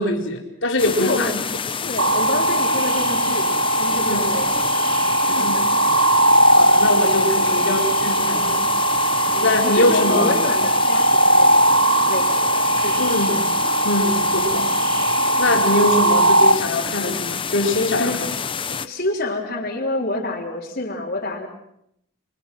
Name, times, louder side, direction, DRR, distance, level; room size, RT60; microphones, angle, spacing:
voice 1, 0.0-1.4 1.8-1.9 4.0-4.3 5.3-5.7 6.6-8.5 9.4-10.3 13.0-13.5 13.8-14.7 15.4-18.3, left 1 dB, 65° left, 2 dB, 4.4 m, -22 dB
sound 1, 0.8-18.9, left 6 dB, 25° left, 0.9 m, -28 dB
voice 2, 1.0-1.5 1.9-3.5 3.8-4.9 5.2-5.5 7.4-7.7 8.3-8.7 9.3-13.4 18.0-18.3 18.7-21.5, left 2 dB, 50° left, -3 dB, 3.7 m, -28 dB
sound 2, 2.0-16.5, right 1 dB, 70° right, 1.7 m, -19 dB
26.0 x 25.0 x 6.2 m, 0.75 s
head